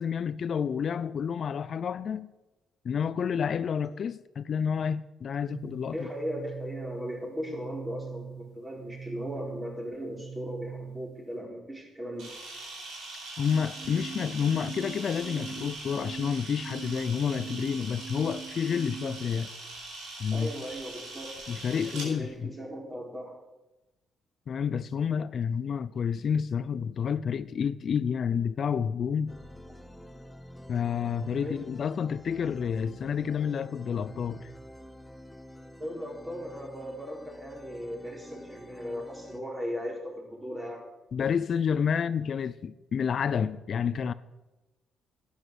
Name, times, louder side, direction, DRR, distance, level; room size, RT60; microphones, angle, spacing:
voice 1, 0.0-2.3 2.8-6.0 13.4-19.5 20.2-20.5 21.5-22.5 24.5-29.3 30.7-34.5 41.1-44.1, left 7 dB, 55° left, 0.4 m, -29 dB
sound 1, 5.4-11.4 13.4-19.4, right 6 dB, 55° right, 0.5 m, -43 dB
voice 2, 5.9-12.3 20.3-21.3 21.8-23.3 31.4-31.6 35.8-40.8 41.9-42.0, equal, 20° right, 3.8 m, -37 dB
Camera, 12.2-22.1, right 2 dB, 80° right, 4.4 m, -42 dB
sound 2, 29.3-39.4, left 1 dB, 5° left, 0.9 m, -48 dB
11.0 x 9.6 x 6.3 m
cardioid pair, 90°, 0 cm